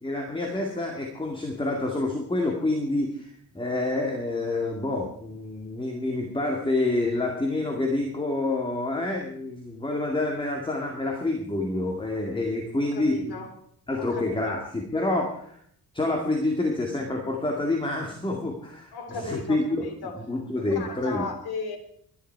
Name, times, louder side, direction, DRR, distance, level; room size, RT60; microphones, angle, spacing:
voice 1, 0.0-13.4 13.9-15.6 15.9-19.9 20.2-21.3, left 2 dB, 15° left, 1 dB, 2.2 m, -28 dB
voice 2, 12.7-13.5 14.0-14.6 18.9-20.2 20.6-21.8, left 4 dB, 90° left, 5 dB, 3.6 m, -35 dB
22.0 x 11.0 x 4.7 m, 0.64 s
cardioid pair, 145°, 37 cm